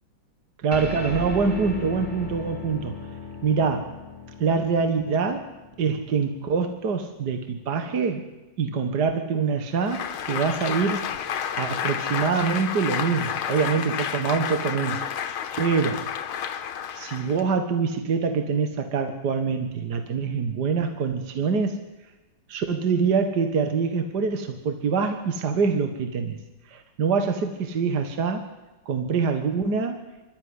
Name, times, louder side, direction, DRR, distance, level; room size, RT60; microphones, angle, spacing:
voice 1, 0.6-2.9 3.4-4.0 4.4-5.5 5.8-8.3 8.6-11.0 11.6-15.0 15.6-16.1 16.9-21.8 22.5-26.4 26.7-28.5 28.9-30.1, right 5 dB, 55° right, 7 dB, 2.0 m, -25 dB
sound 1, 0.7-7.5, left 2 dB, 20° left, 2.7 m, -37 dB
Applause, 9.8-17.5, left 8 dB, 90° left, 2.0 m, -30 dB
26.0 x 13.0 x 9.8 m, 1.1 s
omnidirectional pair, 2.2 m